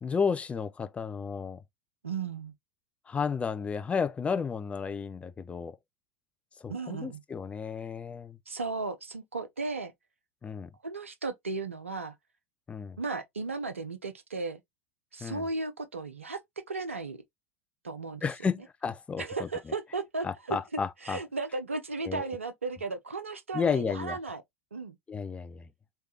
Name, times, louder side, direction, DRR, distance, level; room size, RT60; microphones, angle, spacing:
voice 1, 0.0-1.6 3.1-5.8 6.6-8.4 10.4-10.7 12.7-13.0 15.2-15.5 18.2-19.5 20.2-21.2 22.1-22.2 23.5-24.2 25.1-25.7, left 5 dB, 20° left, 0.5 m, -32 dB
voice 2, 2.0-2.5 6.7-7.2 8.5-9.9 10.8-12.1 13.0-14.6 15.1-16.4 16.7-17.2 17.8-18.3 19.2-20.6 21.0-24.4 24.7-25.0, right 3 dB, 80° right, 0.6 m, -35 dB
3.4 x 3.1 x 2.7 m
figure-of-eight pair, 80°, 7 cm